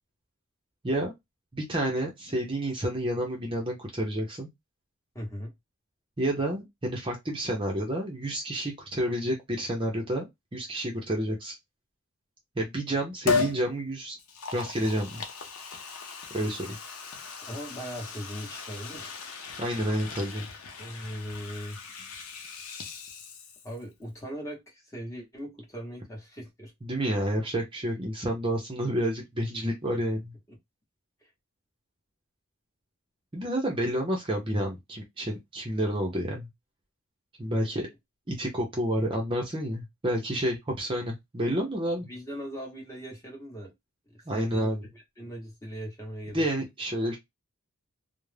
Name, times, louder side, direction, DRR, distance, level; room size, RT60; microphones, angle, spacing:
voice 1, 1.5-4.5 6.2-11.6 12.6-14.2 14.5-15.2 16.3-16.7 19.6-20.5 26.8-30.3 33.3-36.5 37.4-37.9 38.3-42.1 44.3-44.9 46.3-47.2, right 1 dB, 25° right, 0.5 m, -29 dB
voice 2, 5.1-5.5 17.5-19.2 20.8-21.8 23.6-26.7 30.5-30.6 31.2-31.3 37.5-37.8 40.3-40.4 41.9-43.7 44.1-46.5, equal, 15° left, 0.9 m, -40 dB
Liquid, 13.3-13.6 14.2-23.8 24.1-24.2, left 5 dB, 85° left, 0.6 m, -36 dB
2.3 x 2.0 x 3.1 m
head